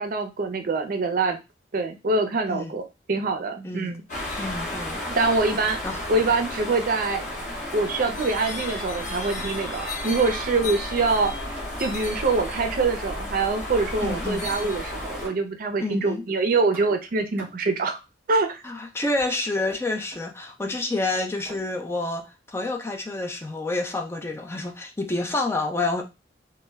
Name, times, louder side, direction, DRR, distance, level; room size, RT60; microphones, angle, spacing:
voice 1, 0.0-1.4 1.7-2.8 3.1-4.0 5.1-5.8 6.1-7.2 7.7-11.3 11.8-18.0 18.3-18.6, right 3 dB, 50° right, 7 dB, 0.5 m, -24 dB
sound 1, 4.1-15.3, left 1 dB, 45° left, 0.8 m, -33 dB
sound 2, 4.3-4.7 5.4-5.8 7.4-8.5 9.3-9.9 10.4-10.8 11.5-12.7 13.8-14.2 15.2-15.7 16.7-17.7 19.2-19.3 19.7-20.3 21.4-21.8, right 1 dB, 15° right, 0.7 m, -48 dB
voice 2, 4.4-5.2 5.8-6.0 14.0-14.5 15.8-16.2 18.6-26.0, left 2 dB, 15° left, 4 dB, 0.3 m, -28 dB
2.1 x 2.1 x 3.3 m, 0.25 s
head